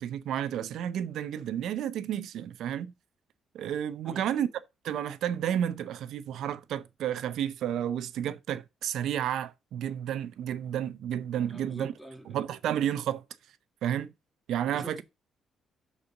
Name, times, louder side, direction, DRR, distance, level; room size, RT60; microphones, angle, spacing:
voice 1, 0.0-2.9 3.5-4.5 4.8-11.9 12.3-13.2 13.8-14.1 14.5-15.0, right 10 dB, 80° right, 0.7 m, -31 dB
voice 2, 11.4-12.4 14.7-15.0, right 1 dB, 5° left, 1.9 m, -45 dB
6.4 x 4.2 x 5.8 m
cardioid pair, 90°, 0 cm